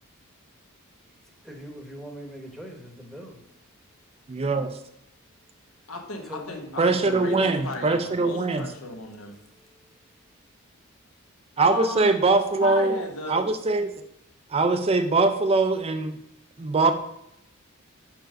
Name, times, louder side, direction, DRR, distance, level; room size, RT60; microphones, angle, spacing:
voice 1, 1.0-3.4 6.2-8.1 9.4-10.1, equal, ahead, 2 dB, 1.0 m, -43 dB
voice 2, 4.3-4.7 6.8-8.7 11.6-13.0 13.3-13.9 14.5-16.2 16.6-16.9, right 3 dB, 30° right, 8 dB, 0.4 m, -22 dB
voice 3, 5.9-9.4 11.6-12.2 12.6-13.5, left 3 dB, 75° left, 4 dB, 1.1 m, -35 dB
5.1 x 4.6 x 6.1 m, 0.82 s
head